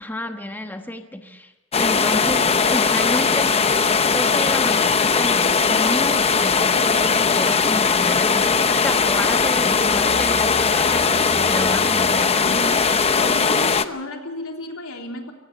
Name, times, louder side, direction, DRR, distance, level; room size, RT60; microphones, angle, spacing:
voice 1, 0.0-1.5 1.8-3.5 3.9-12.6, left 1 dB, 10° left, 5 dB, 1.2 m, -31 dB
sound 1, 1.7-13.9, left 5 dB, 30° left, 0.8 m, -19 dB
voice 2, 12.4-15.3, left 1 dB, 85° left, 2 dB, 3.3 m, -34 dB
23.5 x 17.5 x 6.7 m, 1.0 s
head